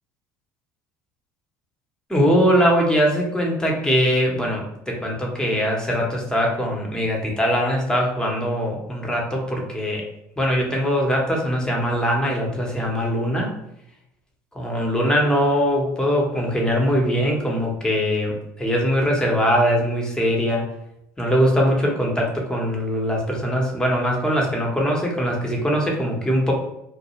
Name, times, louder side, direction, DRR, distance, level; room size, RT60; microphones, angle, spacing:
voice 1, 2.1-10.0 10.4-13.5 14.5-20.7 21.2-26.5, equal, 5° left, -1 dB, 0.9 m, -21 dB
2.3 x 2.1 x 3.0 m, 0.81 s
hypercardioid pair, 75°, 10 cm